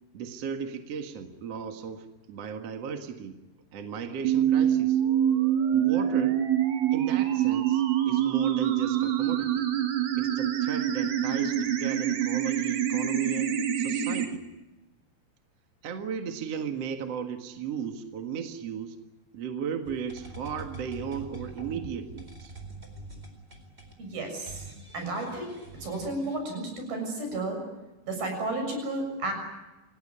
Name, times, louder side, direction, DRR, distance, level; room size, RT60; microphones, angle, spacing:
voice 1, 0.1-3.4 3.7-5.0 5.7-6.4 6.9-9.7 10.2-14.5 15.8-19.0 19.3-22.5, right 7 dB, 50° right, 5 dB, 2.3 m, -36 dB
sound 1, 4.2-14.3, right 10 dB, 85° right, 4.5 m, -25 dB
sound 2, 19.8-26.4, right 2 dB, 15° right, 4.2 m, -45 dB
voice 2, 24.0-24.7 24.9-25.5 25.8-27.6 28.1-29.3, right 2 dB, 70° right, 4 dB, 8.7 m, -32 dB
28.5 x 18.0 x 9.9 m, 1.1 s
omnidirectional pair, 4.5 m